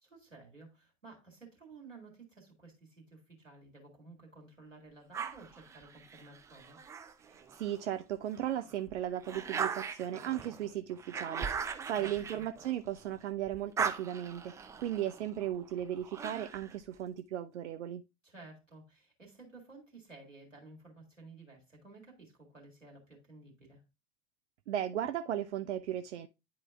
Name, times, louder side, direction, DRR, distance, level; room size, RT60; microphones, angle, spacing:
voice 1, 0.0-6.8 12.0-12.4 18.2-23.8, right 3 dB, 90° right, 2.1 m, -54 dB
sound 1, 5.1-7.8 8.3-13.2 13.5-16.8, right 6 dB, 10° right, 0.3 m, -40 dB
voice 2, 7.3-18.0 24.7-26.3, right 11 dB, 70° right, 0.5 m, -36 dB
10.0 x 4.5 x 2.3 m
figure-of-eight pair, 80°, 37 cm